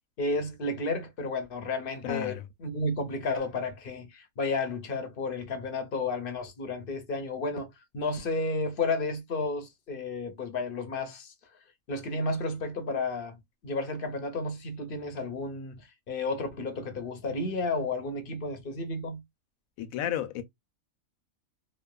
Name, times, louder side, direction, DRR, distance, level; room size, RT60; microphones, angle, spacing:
voice 1, 0.2-11.3 11.9-13.4 13.6-19.2, left 3 dB, 55° left, 0.7 m, -32 dB
voice 2, 2.0-2.5 19.8-20.4, left 10 dB, 80° left, 1.0 m, -32 dB
3.1 x 2.0 x 2.2 m
omnidirectional pair, 1.4 m